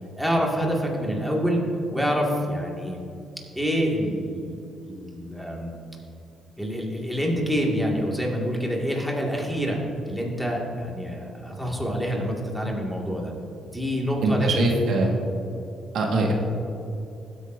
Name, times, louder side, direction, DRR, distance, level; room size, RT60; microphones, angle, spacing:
voice 1, 0.1-1.6 1.9-3.0 3.6-4.6 4.9-5.7 6.6-9.8 10.1-13.3 13.7-14.5, equal, ahead, -2 dB, 2.1 m, -26 dB
voice 2, 14.2-15.1 15.9-16.3, right 2 dB, 75° right, 0 dB, 1.6 m, -22 dB
16.0 x 8.9 x 2.7 m, 2.7 s
cardioid pair, 90°, 0 cm